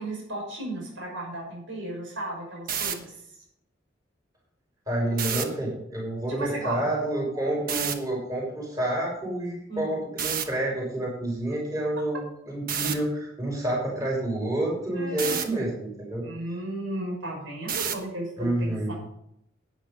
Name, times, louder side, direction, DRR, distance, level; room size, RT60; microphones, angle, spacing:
voice 1, 0.0-3.2 6.3-6.8 9.7-10.0 14.9-15.5 16.2-18.9, right 1 dB, 85° right, -1 dB, 6.0 m, -35 dB
sound 1, 2.6-2.9 5.1-5.4 7.7-7.9 10.2-10.4 12.7-12.9 15.2-15.5 17.7-18.1, right 7 dB, 50° right, 1.3 m, -28 dB
voice 2, 4.9-16.2 18.4-18.9, right 1 dB, 20° right, -3 dB, 6.1 m, -29 dB
11.5 x 10.0 x 5.3 m, 0.75 s
head